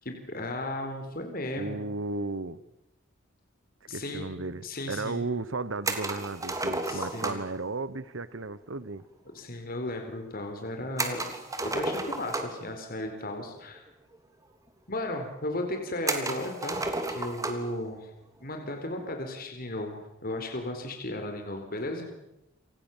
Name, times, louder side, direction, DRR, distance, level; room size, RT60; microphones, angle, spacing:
voice 1, 0.0-1.8 3.9-4.3 4.6-5.2 6.8-7.4 9.3-13.8 14.9-18.1 18.4-22.1, left 1 dB, 45° left, 4.3 m, -35 dB
voice 2, 1.6-2.6 3.9-9.0, right 3 dB, 70° right, 1.1 m, -34 dB
sound 1, 5.8-7.6 11.0-12.7 13.8-13.9 14.1-14.2 15.0-15.1 16.1-17.7, right 2 dB, 15° right, 3.3 m, -32 dB
29.5 x 26.5 x 7.4 m
head